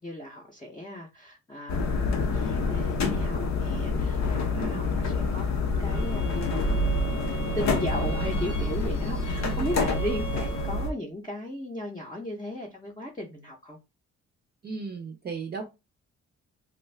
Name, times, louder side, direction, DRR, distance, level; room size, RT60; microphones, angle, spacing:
voice 1, 0.0-13.8, left 1 dB, 15° left, 0.6 m, -36 dB
sound 1, 1.7-10.9, left 3 dB, 65° left, 0.7 m, -27 dB
Bowed string instrument, 5.8-11.0, right 4 dB, 85° left, 1.0 m, -41 dB
voice 2, 14.6-15.7, right 4 dB, 35° right, 0.5 m, -35 dB
2.5 x 2.2 x 3.2 m
cardioid pair, 90°, 30 cm